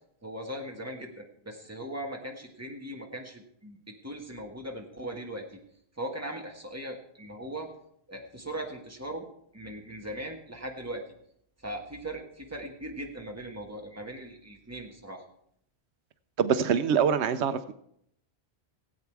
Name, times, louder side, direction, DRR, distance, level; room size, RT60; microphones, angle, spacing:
voice 1, 0.2-5.6 6.0-7.7 8.1-9.2 9.5-11.0 11.6-15.2, right 1 dB, 15° right, 2 dB, 1.6 m, -39 dB
voice 2, 16.4-17.7, right 7 dB, 85° right, 11 dB, 1.0 m, -24 dB
17.0 x 8.5 x 4.6 m, 0.70 s
omnidirectional pair, 1.1 m